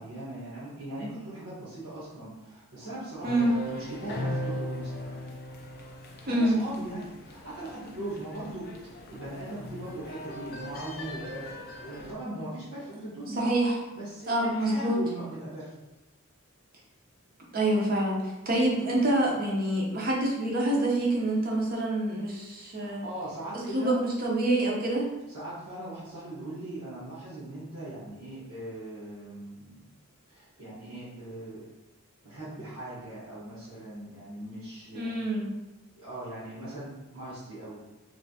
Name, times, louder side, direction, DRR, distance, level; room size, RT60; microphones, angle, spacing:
voice 1, 0.0-5.1 6.2-13.4 13.9-15.7 22.7-24.0 25.3-29.8 30.3-31.6 32.2-35.2 36.0-37.8, right 1 dB, 80° right, -11 dB, 1.2 m, -40 dB
sound 1, 3.2-12.1, left 1 dB, 45° left, 0.4 m, -39 dB
voice 2, 6.3-6.6 13.4-13.8 14.3-15.0 17.5-23.0 23.7-25.1 34.9-35.5, right 1 dB, 40° right, -2 dB, 0.7 m, -26 dB
3.2 x 2.8 x 2.8 m, 1.1 s
head